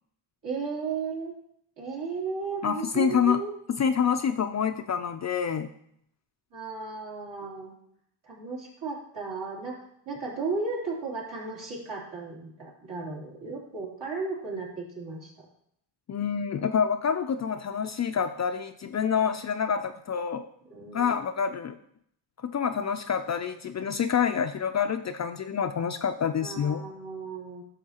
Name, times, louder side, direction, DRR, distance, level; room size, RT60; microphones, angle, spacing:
voice 1, 0.4-1.3 1.8-3.5 6.5-7.7 8.2-9.7 10.0-15.4 20.7-21.2 26.4-27.6, right 4 dB, 60° right, -4 dB, 3.2 m, -35 dB
voice 2, 2.6-3.4 3.7-5.7 16.1-20.5 20.9-21.8 22.4-26.8, left 7 dB, 35° left, 8 dB, 0.4 m, -27 dB
11.5 x 6.4 x 2.9 m, 0.71 s
cardioid pair, 95°, 48 cm